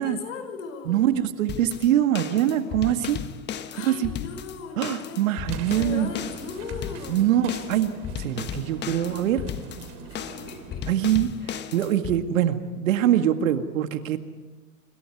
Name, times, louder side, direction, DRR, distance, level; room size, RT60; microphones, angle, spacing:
voice 1, 0.0-1.1 3.7-5.2 5.7-7.3 10.0-10.8, left 6 dB, 60° left, 6 dB, 6.1 m, -38 dB
voice 2, 0.9-3.2 3.8-4.1 4.8-6.1 7.1-7.9 8.2-9.4 10.8-14.2, right 11 dB, 60° right, 8 dB, 2.1 m, -23 dB
sound 1, 1.5-12.2, left 9 dB, 25° left, 1.4 m, -35 dB
sound 2, 5.5-11.2, right 6 dB, 40° right, 3.5 m, -42 dB
26.5 x 26.0 x 4.9 m, 1.3 s
hypercardioid pair, 115°, 43 cm